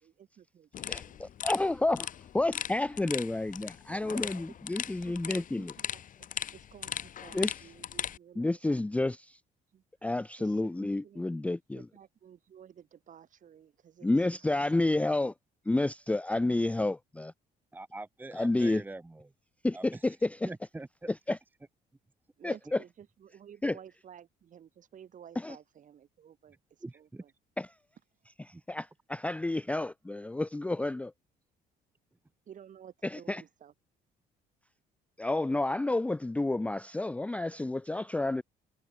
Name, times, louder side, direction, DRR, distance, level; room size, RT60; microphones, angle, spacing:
voice 1, 0.0-1.2 4.8-9.1 9.7-9.8 10.4-11.3 11.7-14.1 14.5-14.7 16.6-16.8 22.4-26.6 26.9-27.3 32.5-33.7, right 9 dB, 50° right, 4.8 m, -54 dB
sound 1, 0.7-8.2, left 10 dB, 50° left, 2.7 m, -39 dB
voice 2, 0.9-2.1 2.3-5.7 7.3-7.5 8.4-9.4 10.0-11.9 14.0-15.3 15.7-17.3 18.3-18.8 19.6-20.5 21.3-21.4 22.4-22.8 23.6-23.8 25.4-25.6 27.6-27.7 28.5-31.1 33.0-33.4 35.2-38.4, left 2 dB, 10° left, 0.5 m, -30 dB
voice 3, 17.7-19.3 19.7-20.1 20.4-21.1 26.8-27.2 28.5-28.6, right 2 dB, 10° right, 1.1 m, -44 dB
cardioid pair, 110°, 17 cm